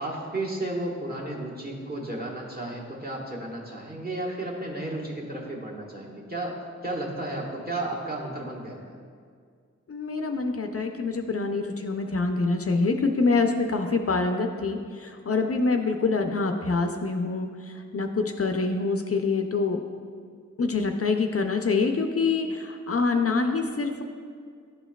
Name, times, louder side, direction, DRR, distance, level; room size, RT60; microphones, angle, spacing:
voice 1, 0.0-6.6 6.8-9.0, right 1 dB, 30° right, -3 dB, 1.2 m, -33 dB
voice 2, 9.9-17.5 17.9-19.8 20.6-24.0, left 4 dB, 55° left, 5 dB, 0.4 m, -25 dB
11.0 x 4.5 x 2.2 m, 2.1 s
wide cardioid pair, 55°, 29 cm